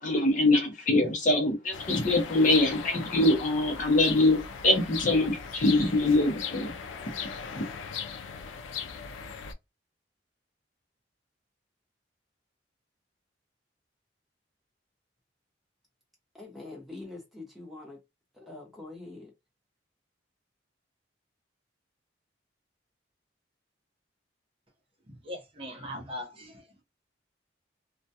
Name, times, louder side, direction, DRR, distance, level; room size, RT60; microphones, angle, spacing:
voice 1, 0.0-4.4 4.6-6.8 7.5-7.6, left 2 dB, 45° left, 0.6 m, -24 dB
sound 1, 1.7-9.5, left 6 dB, 90° left, 0.4 m, -38 dB
voice 2, 16.3-18.0 18.4-19.3, left 2 dB, ahead, 0.8 m, -44 dB
voice 3, 25.1-26.8, equal, 30° right, 0.7 m, -40 dB
2.2 x 2.1 x 2.7 m
head